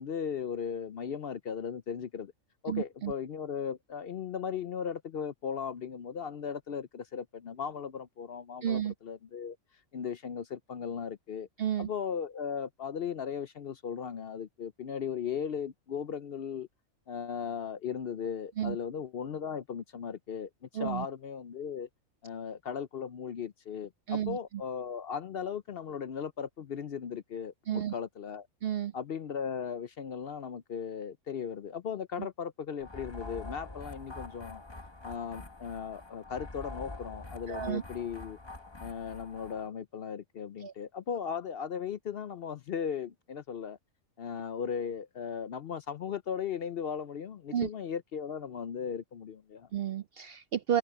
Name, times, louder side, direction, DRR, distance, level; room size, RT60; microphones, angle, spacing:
voice 1, 0.0-2.3 2.6-9.6 9.9-11.5 11.8-16.7 17.1-21.9 22.2-28.5 28.9-34.6 35.0-38.4 38.8-43.8 44.2-49.7, left 7 dB, 55° left, 0.7 m, -37 dB
voice 2, 2.7-3.1 8.6-8.9 11.6-11.9 18.6-18.8 20.7-21.1 24.1-24.4 27.7-27.9 28.6-28.9 37.5-37.8 40.6-40.7 47.5-47.7 49.7-50.8, right 10 dB, 65° right, 0.6 m, -31 dB
sound 1, 32.8-39.7, left 2 dB, 20° left, 1.3 m, -45 dB
omnidirectional pair, 1.4 m